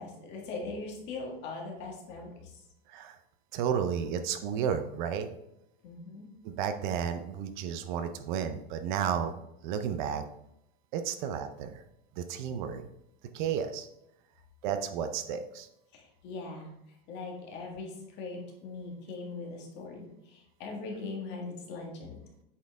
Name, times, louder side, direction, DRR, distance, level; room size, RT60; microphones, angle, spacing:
voice 1, 0.0-2.6 5.8-6.3 15.9-16.7 17.1-22.1, left 3 dB, 35° left, -1 dB, 1.7 m, -40 dB
voice 2, 3.5-5.3 6.4-9.3 9.6-10.2 10.9-11.8 12.2-12.8 13.3-13.9 14.6-15.7, right 8 dB, 50° right, 9 dB, 0.6 m, -32 dB
8.4 x 4.4 x 3.5 m, 0.81 s
supercardioid pair, 165°, 30 cm